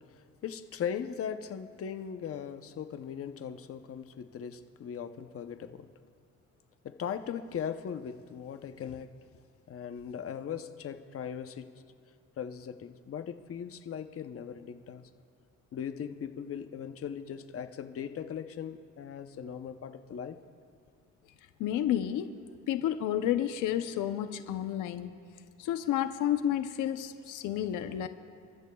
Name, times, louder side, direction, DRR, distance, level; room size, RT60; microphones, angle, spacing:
voice 1, 0.1-5.9 6.8-9.1 9.7-11.7 12.4-15.1 15.7-20.4, left 8 dB, 50° left, 9 dB, 0.8 m, -39 dB
voice 2, 21.6-22.3 22.7-25.1 25.6-28.1, left 11 dB, 85° left, 9 dB, 0.7 m, -30 dB
29.0 x 13.5 x 2.3 m, 2.2 s
cardioid pair, 90°, 30 cm